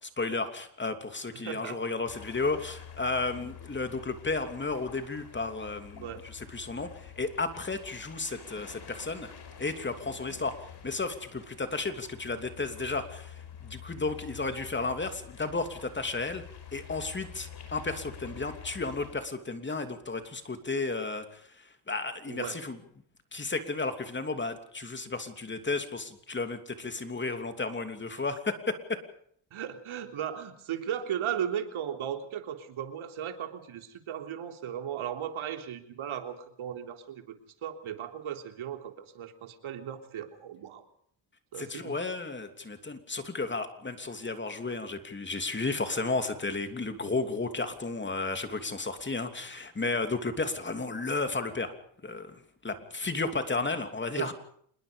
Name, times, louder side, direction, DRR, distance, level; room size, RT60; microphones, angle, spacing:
voice 1, 0.0-9.3 9.6-10.5 10.8-16.4 16.7-21.4 21.9-22.8 23.3-29.0 41.6-51.7 52.0-54.3, left 3 dB, 20° left, 8 dB, 3.0 m, -33 dB
voice 2, 1.4-1.8 6.0-6.2 22.3-22.6 29.5-37.4 37.6-40.8 41.5-42.0 54.2-54.3, right 9 dB, 70° right, 6 dB, 3.7 m, -36 dB
sound 1, 2.1-19.2, left 8 dB, 50° left, 5.4 m, -48 dB
27.0 x 21.0 x 5.3 m, 0.64 s
cardioid pair, 110°, 50 cm